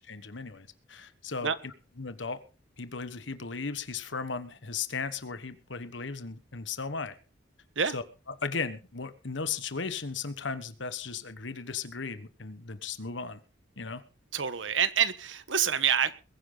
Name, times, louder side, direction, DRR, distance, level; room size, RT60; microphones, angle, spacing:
voice 1, 0.1-1.7 2.0-2.4 2.8-7.1 7.9-8.0 8.4-13.4 13.8-14.0, left 5 dB, 75° left, 1.4 m, -36 dB
voice 2, 14.3-16.2, right 8 dB, 85° right, 1.3 m, -27 dB
21.5 x 10.0 x 4.0 m
head